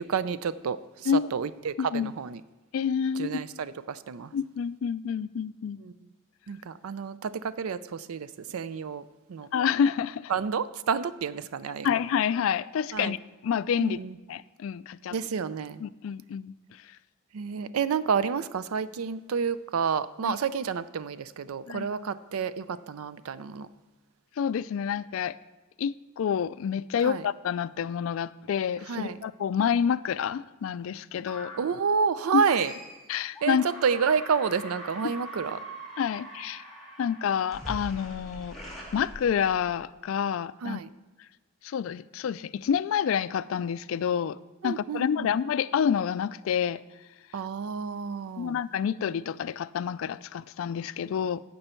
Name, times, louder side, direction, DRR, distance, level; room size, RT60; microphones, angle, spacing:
voice 1, 0.0-2.4 3.2-4.3 5.8-5.9 6.5-9.5 10.3-12.0 12.9-13.1 13.8-14.2 15.1-15.8 17.3-23.7 27.0-27.3 28.9-29.2 31.6-32.7 33.4-35.6 40.6-40.9 44.6-45.3 47.3-48.6, right 6 dB, 90° right, 15 dB, 0.4 m, -30 dB
voice 2, 1.8-2.1 2.7-3.3 4.3-5.8 9.5-10.3 11.8-14.0 14.3-15.2 15.8-16.5 20.2-20.4 21.7-21.9 24.4-25.4 25.8-31.5 32.3-32.4 33.1-33.7 35.0-35.1 36.0-36.6 37.0-38.6 38.9-40.8 41.6-44.4 44.6-46.8 48.4-51.4, left 7 dB, 65° left, 16 dB, 0.3 m, -28 dB
sound 1, 31.3-31.8 32.4-33.0 33.3-39.8, equal, ahead, 2.5 m, -42 dB
15.5 x 5.4 x 4.4 m, 1.1 s
head